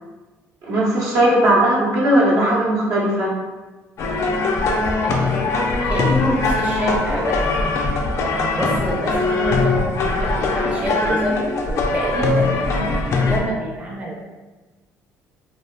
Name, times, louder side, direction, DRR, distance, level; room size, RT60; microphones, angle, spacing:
voice 1, 0.6-3.3, right 1 dB, 70° right, -5 dB, 0.8 m, -17 dB
sound 1, 4.0-13.4, left 3 dB, 60° left, 0.4 m, -21 dB
voice 2, 5.0-7.8 8.6-14.2, right 1 dB, 25° right, -4 dB, 0.6 m, -27 dB
3.2 x 2.3 x 2.2 m, 1.2 s
cardioid pair, 105°, 6 cm